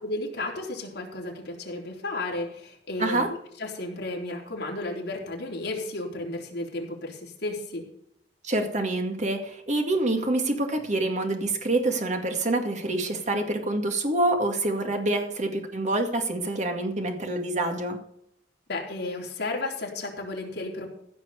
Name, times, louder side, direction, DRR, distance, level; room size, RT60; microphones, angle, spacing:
voice 1, 0.0-3.2 3.6-7.8 18.7-20.9, left 2 dB, 60° left, -1 dB, 3.9 m, -33 dB
voice 2, 3.0-3.3 8.4-18.0, right 2 dB, 40° right, 4 dB, 2.1 m, -26 dB
16.0 x 6.1 x 6.9 m, 0.73 s
head